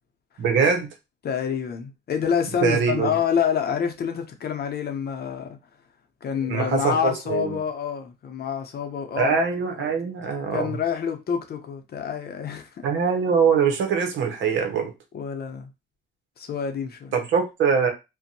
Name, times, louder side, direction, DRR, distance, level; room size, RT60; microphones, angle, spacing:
voice 1, 0.4-0.9 2.6-3.2 6.5-7.6 9.2-10.7 12.8-14.9 17.1-17.9, right 6 dB, 70° right, 0.8 m, -23 dB
voice 2, 1.2-5.6 6.2-9.3 9.8-9.9 10.5-12.9 15.1-15.7 16.4-17.1, left 7 dB, 50° left, 0.6 m, -27 dB
2.6 x 2.1 x 2.6 m
cardioid pair, 90°, 20 cm